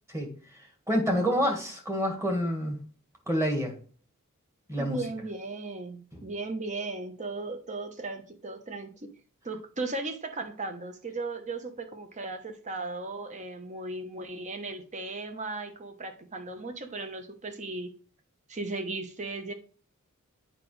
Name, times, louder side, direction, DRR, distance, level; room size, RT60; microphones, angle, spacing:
voice 1, 0.1-2.8 3.3-3.8 4.7-5.0 6.1-6.2, equal, 15° right, 1.8 m, -28 dB
voice 2, 4.8-9.1 9.4-17.9 18.5-19.5, right 3 dB, 35° right, 1.0 m, -36 dB
8.4 x 4.9 x 3.2 m
head